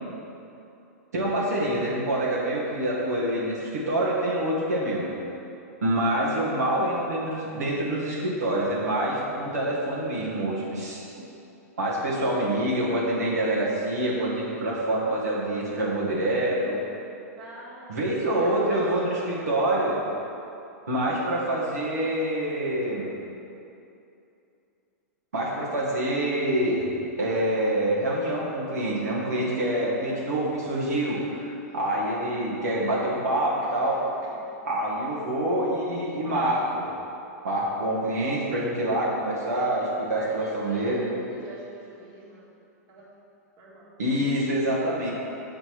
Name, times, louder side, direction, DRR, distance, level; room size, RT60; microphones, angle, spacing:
voice 1, 1.1-5.1 5.8-11.2 11.8-16.8 17.9-20.0 20.9-23.1 25.3-26.8 27.2-34.0 34.6-36.9 37.4-41.1 44.0-45.1, right 1 dB, 90° right, -6 dB, 1.6 m, -26 dB
voice 2, 17.4-19.3 31.7-31.8 33.6-34.0 40.2-42.5 42.9-43.1 43.6-43.9, right 2 dB, 45° right, -5 dB, 1.7 m, -45 dB
6.9 x 5.2 x 4.6 m, 2.8 s
hypercardioid pair, 120°, 9 cm